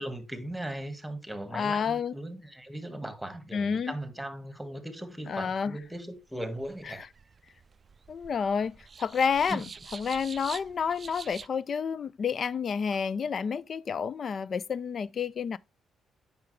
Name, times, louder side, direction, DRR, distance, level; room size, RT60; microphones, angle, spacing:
voice 1, 0.0-7.1 9.5-9.7, right 1 dB, 5° right, 1.7 m, -38 dB
voice 2, 1.5-2.1 3.5-3.9 5.3-5.8 8.1-9.6 9.9-15.6, left 6 dB, 50° left, 0.3 m, -29 dB
sound 1, 6.2-11.5, right 5 dB, 40° right, 0.3 m, -46 dB
8.6 x 6.0 x 3.2 m
cardioid pair, 90°, 0 cm